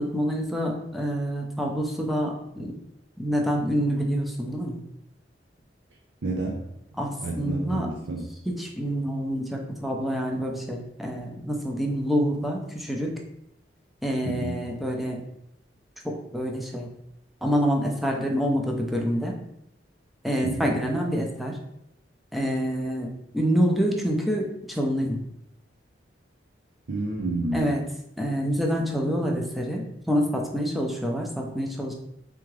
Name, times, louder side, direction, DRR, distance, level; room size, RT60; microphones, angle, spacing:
voice 1, 0.0-2.8 3.2-4.8 7.0-7.9 8.5-13.1 14.0-15.2 16.0-16.9 17.4-19.4 20.2-21.6 22.3-25.2 27.5-27.8 28.2-31.9, equal, ahead, 0 dB, 0.6 m, -27 dB
voice 2, 6.2-6.7 7.2-8.3 14.2-14.6 20.4-20.8 26.9-27.8, right 2 dB, 90° right, -1 dB, 0.6 m, -30 dB
3.6 x 3.5 x 3.2 m, 0.80 s
head